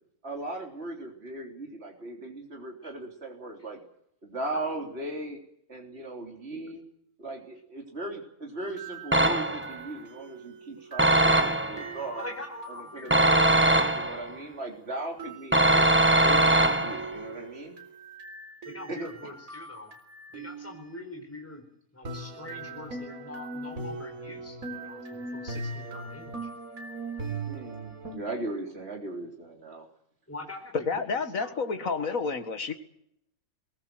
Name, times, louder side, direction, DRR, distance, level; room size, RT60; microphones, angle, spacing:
voice 1, 0.2-3.8 4.2-5.4 5.7-6.8 7.2-12.2 12.9-15.9 16.2-17.8 18.9-19.3 27.5-29.9, right 2 dB, 45° right, 1 dB, 3.8 m, -38 dB
sound 1, 8.6-13.9 15.2-21.0 22.0-28.2, right 3 dB, 70° right, 4.2 m, -41 dB
sound 2, 9.1-9.8 11.0-11.9 13.1-14.3 15.5-17.2, right 1 dB, 10° right, 1.3 m, -22 dB
voice 2, 12.2-13.9 18.6-19.9 20.3-21.6 21.9-25.0 25.3-26.5 30.3-31.5 31.8-31.9, left 2 dB, 10° left, 3 dB, 4.6 m, -43 dB
voice 3, 30.7-32.7, left 4 dB, 65° left, 9 dB, 2.2 m, -30 dB
22.5 x 19.5 x 7.8 m, 0.74 s
omnidirectional pair, 1.5 m